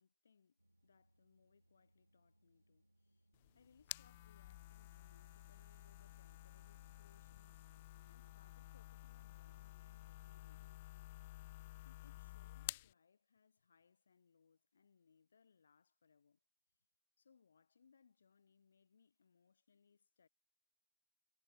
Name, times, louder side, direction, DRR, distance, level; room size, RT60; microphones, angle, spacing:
voice 1, 0.0-3.3 3.5-10.7 11.8-16.4 17.2-20.3, left 6 dB, 60° left, 6.7 m, -72 dB
sound 1, 0.6-7.5, right 1 dB, 85° right, 5.9 m, -76 dB
sound 2, 3.3-12.9, left 18 dB, 40° left, 0.8 m, -52 dB
Wind instrument woodwind instrument, 4.4-12.5, right 4 dB, 70° right, 6.7 m, -77 dB
figure-of-eight pair, 120°, 0 cm